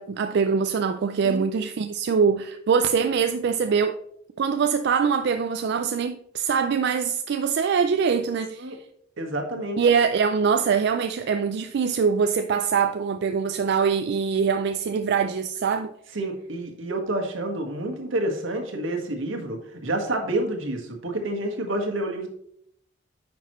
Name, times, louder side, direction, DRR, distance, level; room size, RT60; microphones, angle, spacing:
voice 1, 0.0-4.0 4.4-8.7 9.8-15.9, right 6 dB, 60° right, 0.4 m, -23 dB
voice 2, 9.2-9.8 16.1-22.3, right 1 dB, 85° right, 1.5 m, -29 dB
9.2 x 6.0 x 3.1 m
head